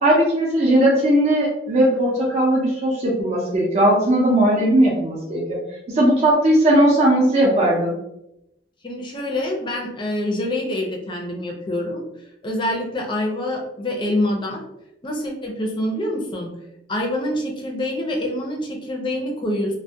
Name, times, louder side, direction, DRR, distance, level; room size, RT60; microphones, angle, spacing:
voice 1, 0.0-5.4 5.9-7.9, right 1 dB, 40° right, -5 dB, 0.5 m, -18 dB
voice 2, 8.8-12.0 12.4-14.6 15.0-16.5 16.9-19.8, left 1 dB, 30° left, 0 dB, 0.5 m, -26 dB
2.2 x 2.1 x 2.6 m, 0.85 s
head